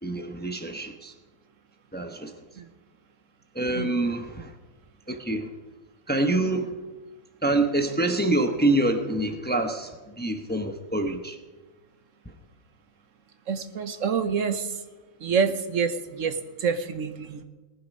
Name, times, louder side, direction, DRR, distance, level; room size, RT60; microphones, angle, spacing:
voice 1, 0.0-1.1 1.9-2.3 3.5-4.5 5.1-5.5 6.1-6.8 7.4-11.4, right 2 dB, 10° left, 5 dB, 0.8 m, -26 dB
voice 2, 13.5-14.8 15.2-17.4, right 6 dB, 70° right, 9 dB, 1.3 m, -27 dB
19.0 x 10.5 x 5.4 m, 1.2 s
omnidirectional pair, 1.4 m